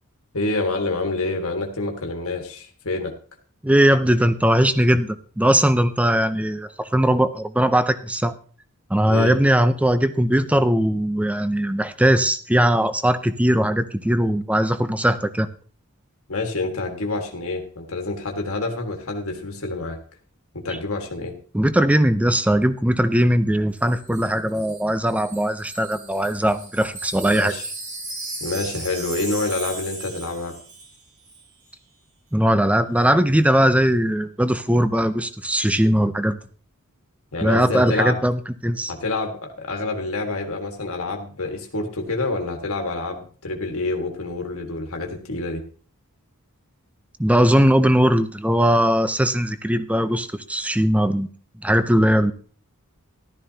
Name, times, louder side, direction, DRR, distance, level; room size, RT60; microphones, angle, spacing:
voice 1, 0.3-3.1 9.1-9.4 16.3-20.0 20.5-21.4 27.3-27.6 28.4-30.6 37.3-38.2 38.9-45.6, left 2 dB, 70° left, 2 dB, 1.7 m, -27 dB
voice 2, 3.6-8.3 8.9-15.5 21.5-27.5 32.3-36.4 37.4-38.9 47.2-51.3 51.6-52.3, equal, 5° right, 12 dB, 0.6 m, -19 dB
Wind chime, 23.8-31.0 31.3-31.5, right 3 dB, 35° right, 2.9 m, -36 dB
14.5 x 12.5 x 2.8 m, 0.42 s
head